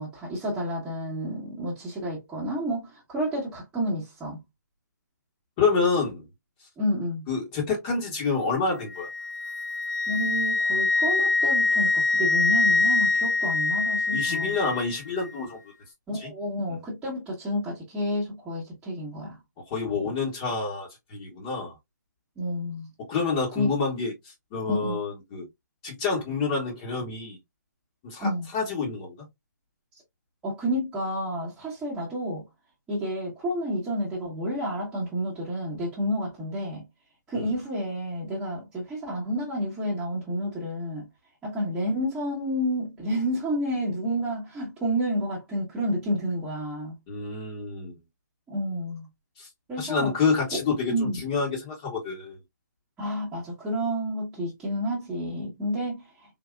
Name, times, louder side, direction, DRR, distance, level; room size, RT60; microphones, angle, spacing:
voice 1, 0.0-4.4 6.8-7.2 10.1-14.5 16.1-19.4 22.4-22.9 23.5-23.8 24.7-25.0 28.2-28.4 30.4-32.4 32.9-36.8 37.3-41.1 41.4-46.9 48.5-49.1 49.7-50.1 50.5-50.6 50.9-51.2 53.0-56.0, equal, 10° right, 1.2 m, -30 dB
voice 2, 5.6-6.3 7.3-9.1 14.1-15.6 16.1-16.3 19.7-21.7 23.1-25.5 25.8-27.4 28.0-29.2 37.3-37.5 47.1-47.9 49.4-49.5 49.8-52.4, left 4 dB, 25° left, 1.2 m, -28 dB
Wind instrument woodwind instrument, 8.9-14.9, left 3 dB, 80° left, 1.8 m, -24 dB
3.7 x 2.6 x 2.3 m
figure-of-eight pair, 140°, 10 cm